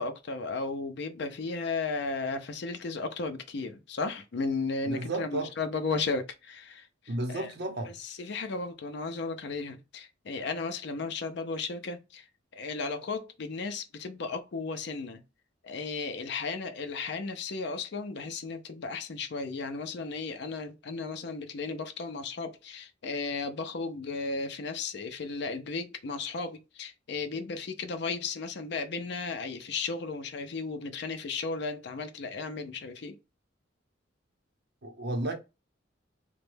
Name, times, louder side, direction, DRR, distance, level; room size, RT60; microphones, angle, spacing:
voice 1, 0.0-6.9 7.3-7.5 7.9-12.2 12.5-15.2 15.6-33.2, left 4 dB, 60° left, 0.5 m, -35 dB
voice 2, 4.8-5.5 7.1-7.9 34.8-35.3, right 1 dB, 55° right, 0.7 m, -32 dB
3.1 x 2.2 x 3.2 m
head